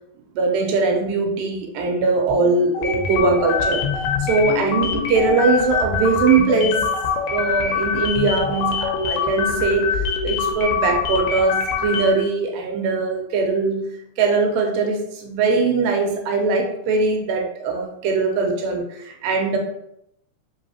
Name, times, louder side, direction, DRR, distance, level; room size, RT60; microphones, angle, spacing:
voice 1, 0.3-3.9 4.2-6.9 7.3-13.9 14.2-19.6, right 4 dB, 80° right, 2 dB, 2.4 m, -21 dB
sound 1, 2.7-12.3, left 5 dB, 80° left, 2.0 m, -24 dB
5.2 x 3.1 x 2.8 m, 0.77 s
omnidirectional pair, 4.1 m